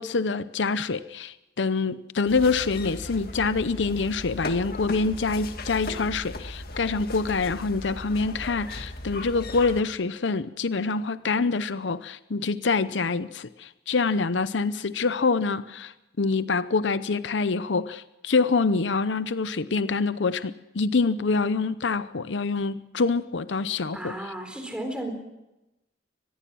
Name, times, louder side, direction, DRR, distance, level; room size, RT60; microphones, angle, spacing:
voice 1, 0.0-24.1, left 4 dB, 75° left, 14 dB, 0.7 m, -26 dB
sound 1, 2.3-9.8, left 1 dB, 55° left, 1.9 m, -37 dB
voice 2, 23.9-25.1, right 1 dB, 5° right, 5 dB, 4.1 m, -34 dB
24.5 x 20.5 x 6.2 m, 0.96 s
head